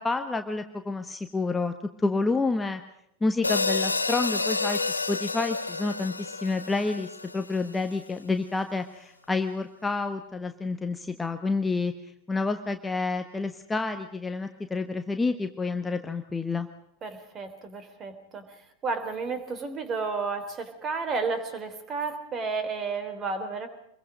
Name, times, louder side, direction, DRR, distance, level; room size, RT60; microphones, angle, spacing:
voice 1, 0.0-2.8 3.2-11.9 12.3-16.7, left 3 dB, 10° left, 7 dB, 1.3 m, -29 dB
sound 1, 3.4-7.8, left 3 dB, 80° left, 1.2 m, -29 dB
voice 2, 17.0-23.7, right 4 dB, 25° right, 10 dB, 3.5 m, -32 dB
26.5 x 22.5 x 5.2 m, 0.75 s
figure-of-eight pair, 90°, 0 cm